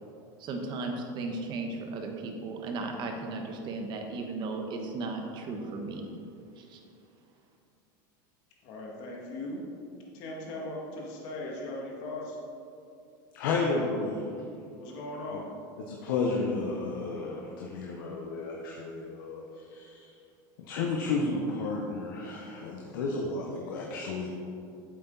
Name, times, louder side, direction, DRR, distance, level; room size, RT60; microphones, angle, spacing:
voice 1, 0.4-6.0 6.6-6.8, right 3 dB, 45° right, 3 dB, 1.3 m, -35 dB
voice 2, 8.6-9.6 10.1-12.4 14.8-15.5, left 2 dB, 65° left, -2 dB, 2.1 m, -38 dB
voice 3, 13.3-14.5 15.3-15.4 15.8-20.1 20.6-24.3, left 3 dB, 80° left, -1 dB, 1.1 m, -32 dB
8.7 x 7.7 x 4.0 m, 2.5 s
supercardioid pair, 125°, 11 cm